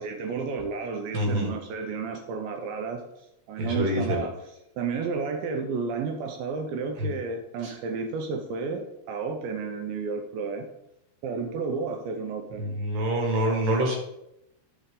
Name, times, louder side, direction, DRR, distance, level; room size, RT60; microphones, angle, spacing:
voice 1, 0.0-4.3 4.8-10.7 11.2-12.8, right 5 dB, 90° right, 5 dB, 2.0 m, -32 dB
voice 2, 1.1-1.5 3.6-4.2 7.0-7.1 7.6-7.7 12.6-14.0, equal, 55° right, 0 dB, 3.2 m, -26 dB
12.5 x 6.0 x 3.8 m, 0.83 s
omnidirectional pair, 5.2 m